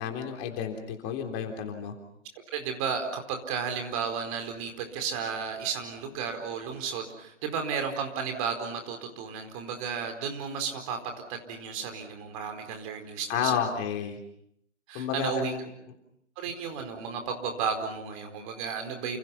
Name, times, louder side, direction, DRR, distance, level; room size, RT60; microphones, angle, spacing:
voice 1, 0.0-1.9 13.3-14.2 14.9-15.7, left 8 dB, 25° left, 3 dB, 3.5 m, -31 dB
voice 2, 2.5-11.0 11.3-13.8 14.9-15.5 16.4-19.2, right 6 dB, 30° right, 5 dB, 4.5 m, -33 dB
29.5 x 28.5 x 5.8 m, 0.72 s
figure-of-eight pair, 135°, 36 cm